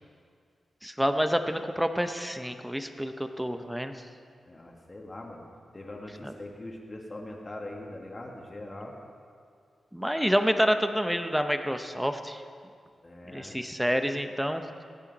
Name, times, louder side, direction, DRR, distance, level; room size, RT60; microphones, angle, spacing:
voice 1, 0.8-3.9 6.2-6.3 9.9-12.4 13.3-14.8, equal, 5° right, 7 dB, 0.7 m, -28 dB
voice 2, 4.5-5.4 5.7-9.0 13.0-13.6, left 1 dB, 30° left, 0 dB, 1.7 m, -42 dB
20.5 x 8.8 x 4.1 m, 2.2 s
wide cardioid pair, 100°, 0 cm